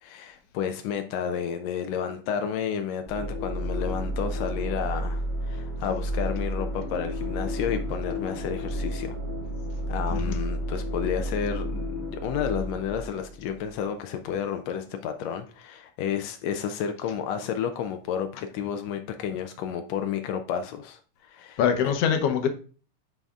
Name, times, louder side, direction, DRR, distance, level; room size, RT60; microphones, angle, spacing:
voice 1, 0.0-9.2 9.9-21.6, left 8 dB, 85° left, 1.5 m, -31 dB
sound 1, 3.0-13.8, equal, 25° right, 1.0 m, -31 dB
voice 2, 21.6-22.5, left 8 dB, 70° left, 1.5 m, -23 dB
10.5 x 4.1 x 2.4 m
omnidirectional pair, 3.7 m